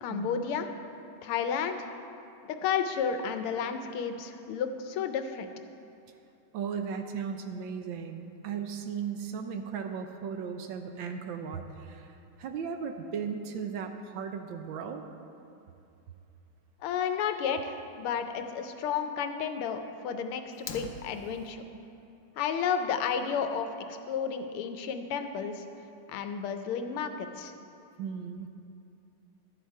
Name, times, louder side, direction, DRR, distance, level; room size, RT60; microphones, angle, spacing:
voice 1, 0.0-0.7 1.2-1.9 2.4-5.5 16.8-21.6 22.4-25.7 26.1-27.5, left 7 dB, 85° left, 7 dB, 1.6 m, -32 dB
voice 2, 6.5-12.1 12.4-15.1 28.0-28.5, right 6 dB, 70° right, 6 dB, 1.3 m, -36 dB
Fire, 20.5-21.5, left 5 dB, 60° left, 1.1 m, -42 dB
12.0 x 9.1 x 4.6 m, 2.6 s
omnidirectional pair, 2.4 m